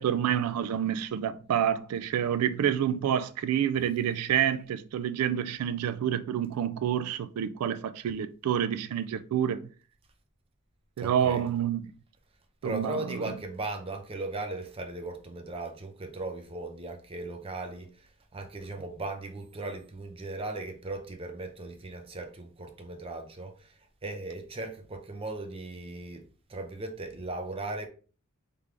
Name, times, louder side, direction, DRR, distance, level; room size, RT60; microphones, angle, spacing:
voice 1, 0.0-9.7 11.0-11.9 12.6-13.3, right 9 dB, 85° right, 0.3 m, -28 dB
voice 2, 11.0-11.5 12.6-26.2 26.5-27.9, right 2 dB, 25° right, 0.6 m, -38 dB
3.6 x 3.3 x 3.3 m
head